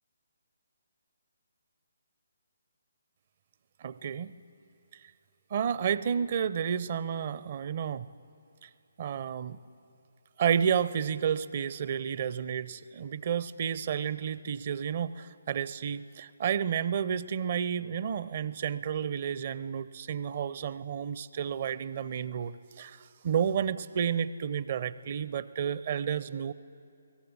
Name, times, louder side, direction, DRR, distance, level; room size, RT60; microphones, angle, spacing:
voice 1, 3.8-4.3 5.5-8.1 8.6-8.7 9.0-9.6 10.4-26.5, right 8 dB, 40° right, 17 dB, 0.6 m, -31 dB
22.5 x 19.0 x 8.9 m, 2.6 s
figure-of-eight pair, 140°, 0 cm